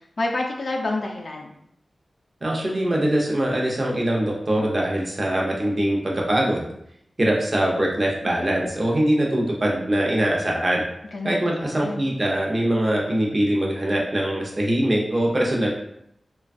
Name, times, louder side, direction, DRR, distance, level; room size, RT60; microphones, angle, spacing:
voice 1, 0.2-1.6 11.1-12.0, left 2 dB, 60° left, 0 dB, 0.4 m, -28 dB
voice 2, 2.4-6.7 7.2-10.8 11.2-15.7, right 1 dB, 35° right, -2 dB, 0.6 m, -22 dB
3.2 x 2.2 x 2.4 m, 0.74 s
wide cardioid pair, 115°, 0 cm